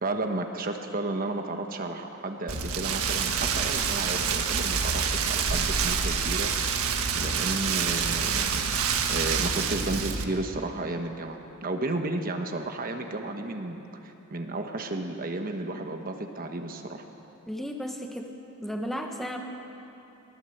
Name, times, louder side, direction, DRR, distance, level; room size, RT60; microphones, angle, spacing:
voice 1, 0.0-6.5 7.1-8.5 9.1-17.1, right 2 dB, 40° right, 5 dB, 1.2 m, -33 dB
Rain, 2.5-10.2, right 6 dB, 90° right, 1.5 m, -27 dB
voice 2, 17.5-19.4, equal, ahead, 2 dB, 1.2 m, -34 dB
23.0 x 17.5 x 7.9 m, 2.9 s
head